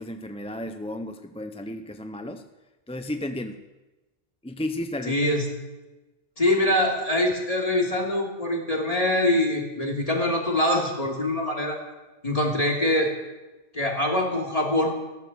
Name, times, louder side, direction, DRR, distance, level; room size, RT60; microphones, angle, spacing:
voice 1, 0.0-2.5 2.9-3.6 4.4-5.3, left 1 dB, 5° left, 7 dB, 0.6 m, -33 dB
voice 2, 5.1-5.4 6.4-11.8 12.2-13.1 13.7-14.9, left 1 dB, 35° left, -1 dB, 3.1 m, -24 dB
14.5 x 13.0 x 7.4 m, 1.1 s
omnidirectional pair, 1.1 m